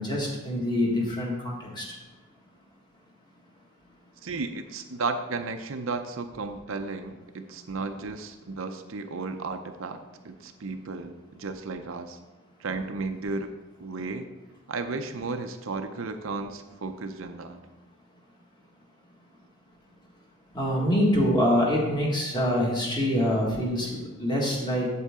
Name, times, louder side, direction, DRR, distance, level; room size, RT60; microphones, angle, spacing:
voice 1, 0.0-1.8 20.5-24.9, equal, 20° left, -2 dB, 1.7 m, -25 dB
voice 2, 4.2-12.2 12.6-13.5 13.8-14.3 14.7-17.6, right 3 dB, 65° right, 7 dB, 0.6 m, -34 dB
8.2 x 7.7 x 3.6 m, 1.1 s
head